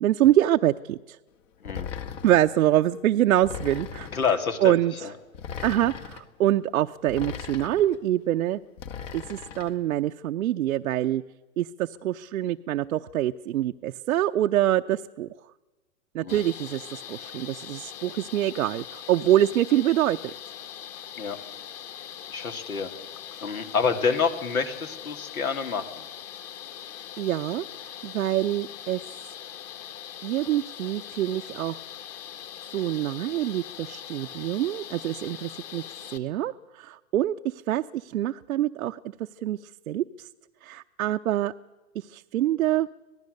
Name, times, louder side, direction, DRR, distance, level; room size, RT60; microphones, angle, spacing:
voice 1, 0.0-1.2 2.2-4.1 4.6-5.1 5.6-8.6 9.1-11.2 11.6-15.3 16.1-20.3 27.2-29.0 30.2-31.8 32.7-35.8 36.1-39.0 39.4-39.6 39.9-40.3 40.6-41.5 41.9-42.9, right 13 dB, 75° right, 5 dB, 0.8 m, -25 dB
sound 1, 1.7-2.5 3.4-4.3 5.3-6.2 7.1-8.0 8.8-9.7, left 7 dB, 60° left, 2.2 m, -38 dB
voice 2, 4.1-5.1 16.2-16.4 21.2-21.4 22.3-22.9 23.4-26.0, left 5 dB, 90° left, 7 dB, 2.7 m, -28 dB
sound 2, 16.3-36.2, left 10 dB, 35° left, 1.8 m, -41 dB
26.0 x 18.0 x 6.6 m, 1.2 s
hypercardioid pair, 120°, 42 cm